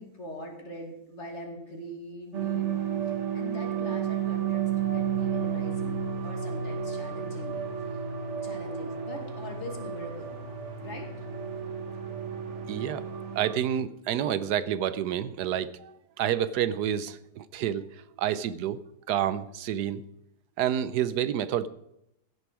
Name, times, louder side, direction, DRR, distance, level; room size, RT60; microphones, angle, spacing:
voice 1, 0.0-2.7 3.1-7.7 8.4-10.4 10.8-11.1, equal, 45° left, 2 dB, 2.6 m, -42 dB
sound 1, 2.3-13.6, right 7 dB, 45° right, 1.8 m, -32 dB
voice 2, 12.7-13.0 13.3-20.0 20.6-21.7, right 10 dB, 85° right, 15 dB, 1.3 m, -29 dB
16.0 x 9.9 x 4.7 m, 0.80 s
omnidirectional pair, 1.7 m